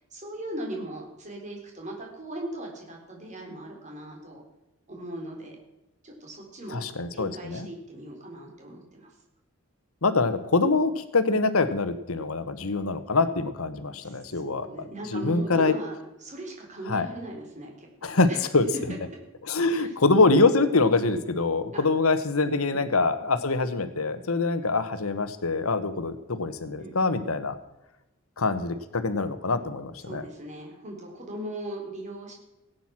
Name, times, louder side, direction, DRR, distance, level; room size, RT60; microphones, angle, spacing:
voice 1, 0.1-4.4 4.9-5.6 6.0-6.8 7.1-9.1 14.0-17.9 18.3-18.4 19.7-19.9 21.7-21.9 22.4-22.8 26.8-27.0 30.1-32.3, right 1 dB, 35° right, 0 dB, 3.9 m, -39 dB
voice 2, 6.7-7.7 10.0-15.7 16.9-17.1 18.0-18.7 19.4-27.5 28.4-30.2, left 3 dB, 85° left, 11 dB, 1.2 m, -24 dB
17.0 x 9.3 x 6.0 m, 0.95 s
head